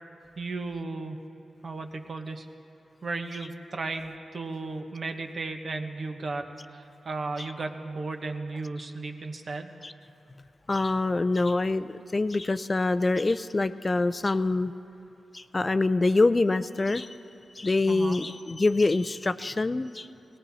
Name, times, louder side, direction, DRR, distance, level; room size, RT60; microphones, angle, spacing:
voice 1, 0.4-1.2 1.6-2.5 3.0-9.7 17.9-18.2, right 3 dB, 55° right, 5 dB, 1.2 m, -35 dB
voice 2, 10.7-14.7 15.3-17.2 17.6-20.1, left 3 dB, 35° left, 11 dB, 0.4 m, -25 dB
18.5 x 17.5 x 4.2 m, 2.7 s
cardioid pair, 65°, 0 cm